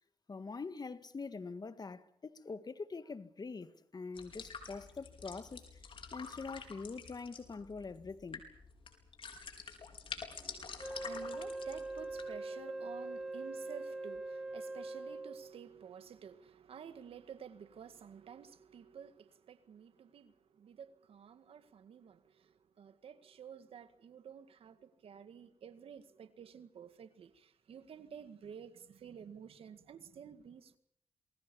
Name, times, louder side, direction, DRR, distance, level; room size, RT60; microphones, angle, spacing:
voice 1, 0.3-5.8 6.1-8.4, left 4 dB, 45° left, 1.7 m, -44 dB
sound 1, 4.2-12.2, left 5 dB, 65° left, 4.7 m, -48 dB
voice 2, 10.4-30.8, right 7 dB, 80° right, 1.9 m, -51 dB
Wind instrument woodwind instrument, 10.8-15.5, right 2 dB, 5° right, 2.7 m, -42 dB
27.5 x 21.0 x 7.0 m
cardioid pair, 70°, 10 cm